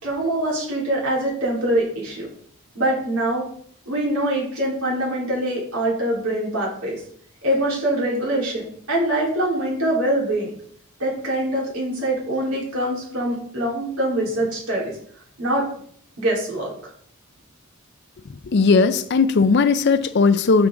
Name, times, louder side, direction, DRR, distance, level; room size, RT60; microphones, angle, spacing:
voice 1, 0.0-2.3 2.7-3.4 3.9-6.9 7.4-10.5 11.0-14.9 15.4-15.6 16.2-16.7, right 1 dB, 90° right, 4.0 m, -24 dB
voice 2, 18.5-20.7, left 4 dB, 50° left, 0.4 m, -17 dB
9.6 x 6.3 x 3.8 m
head